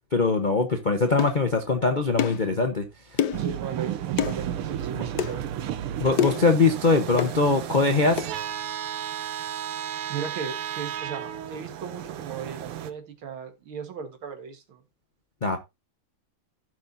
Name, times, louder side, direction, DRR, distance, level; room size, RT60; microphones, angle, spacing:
voice 1, 0.1-2.8 6.0-8.3 15.4-15.6, left 3 dB, 45° left, 0.6 m, -22 dB
sound 1, 1.2-1.4 2.2-2.4 3.2-3.5 4.2-4.4 5.2-5.3 6.2-6.5 7.2-7.4 8.2-8.3, left 10 dB, 70° left, 1.0 m, -26 dB
sound 2, 3.3-12.9, right 10 dB, 85° right, 1.7 m, -33 dB
voice 2, 3.4-5.5 10.1-14.8, right 6 dB, 70° right, 2.3 m, -36 dB
15.5 x 6.1 x 2.7 m
omnidirectional pair, 2.4 m